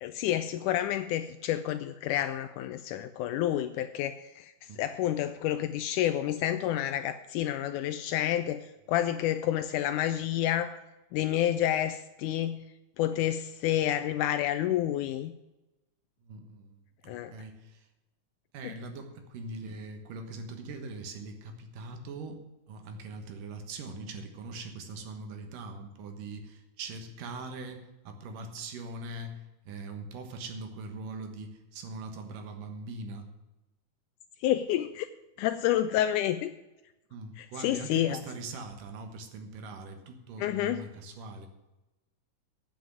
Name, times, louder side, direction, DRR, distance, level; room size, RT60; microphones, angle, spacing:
voice 1, 0.0-4.5 4.8-10.8 11.1-12.6 13.0-15.3 17.1-17.3 18.6-18.7 34.4-35.1 35.4-36.5 37.4-38.2 40.4-40.8, left 12 dB, 80° left, 10 dB, 2.0 m, -29 dB
voice 2, 16.2-17.9 18.5-22.4 22.7-33.3 37.1-41.5, right 3 dB, 85° right, 6 dB, 3.0 m, -42 dB
8.7 x 7.7 x 9.1 m, 1.0 s
omnidirectional pair, 3.7 m